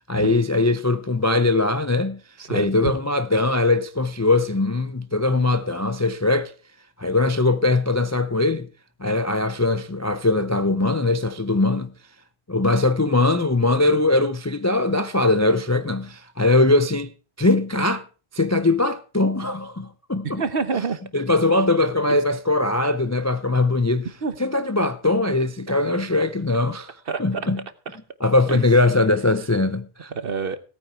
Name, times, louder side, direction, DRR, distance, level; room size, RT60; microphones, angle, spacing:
voice 1, 0.1-2.2 2.5-6.5 7.0-8.7 9.0-11.9 12.5-17.1 17.4-18.0 18.3-20.4 21.1-24.1 24.4-27.6 28.2-30.1, left 2 dB, 25° left, 0.4 m, -21 dB
voice 2, 2.4-2.9 20.2-21.0 24.2-24.3 27.1-27.4 28.5-28.6 30.1-30.6, right 5 dB, 50° right, 1.1 m, -27 dB
18.0 x 8.9 x 4.6 m
omnidirectional pair, 1.3 m